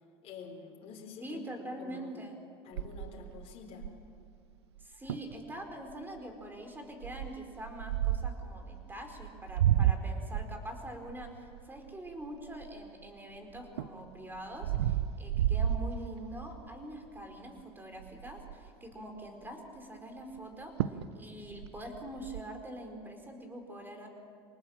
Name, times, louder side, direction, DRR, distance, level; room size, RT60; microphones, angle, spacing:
voice 1, 0.2-2.1 2.6-3.9, left 5 dB, 50° left, 0 dB, 3.9 m, -48 dB
voice 2, 1.2-2.4 4.8-24.1, right 1 dB, 15° right, 4 dB, 4.4 m, -44 dB
sound 1, 2.8-4.2 4.8-4.9 5.1-5.4 5.9-6.2 7.0-8.5 9.2-13.1 13.5-16.6 17.0-17.3 17.6-17.7 18.0-18.7 20.4-20.5 20.8-21.1 21.4-22.4, right 11 dB, 85° right, 0.7 m, -32 dB
24.5 x 19.5 x 7.3 m, 2.3 s
hypercardioid pair, 90°, 13 cm